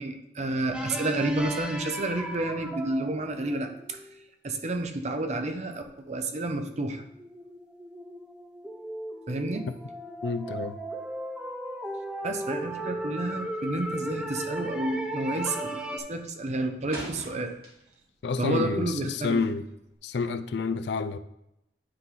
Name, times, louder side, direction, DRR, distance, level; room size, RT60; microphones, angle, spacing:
voice 1, 0.0-4.0 4.4-7.0 9.3-9.6 12.2-17.5 18.4-19.4, right 2 dB, 40° right, 0.8 m, -30 dB
sound 1, 0.7-4.2 5.9-6.0 6.6-16.0, right 1 dB, 5° right, 0.6 m, -36 dB
voice 2, 10.2-10.8 18.2-19.7 20.0-21.2, left 4 dB, 70° left, 0.4 m, -29 dB
sound 2, 16.1-18.2 18.5-20.0, right 1 dB, 60° right, 2.3 m, -43 dB
9.7 x 3.9 x 3.7 m
head